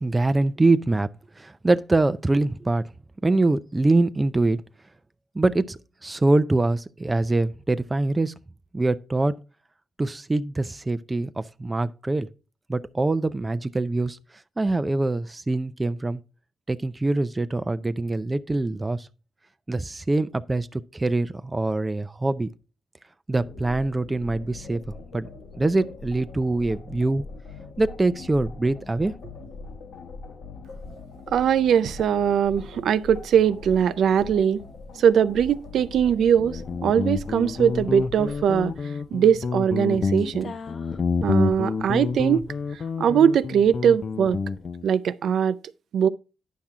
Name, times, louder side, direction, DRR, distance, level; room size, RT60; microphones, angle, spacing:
voice 1, 0.0-1.1 1.4-2.8 3.2-4.6 5.3-8.3 8.7-9.4 10.0-12.3 12.7-14.2 14.6-16.2 16.7-19.1 19.7-22.5 23.3-24.8 25.1-25.3 25.6-27.3 27.8-29.1, right 2 dB, 15° right, 0.5 m, -24 dB
sound 1, 23.4-38.7, left 4 dB, 75° left, 1.3 m, -42 dB
voice 2, 31.3-34.6 35.0-38.7 39.1-40.5 41.2-42.4 43.0-44.4 44.8-45.6 45.9-46.1, right 8 dB, 70° right, 0.4 m, -21 dB
Guitar, 36.4-44.9, left 5 dB, 40° left, 0.6 m, -28 dB
10.5 x 5.8 x 3.6 m
cardioid pair, 115°, 0 cm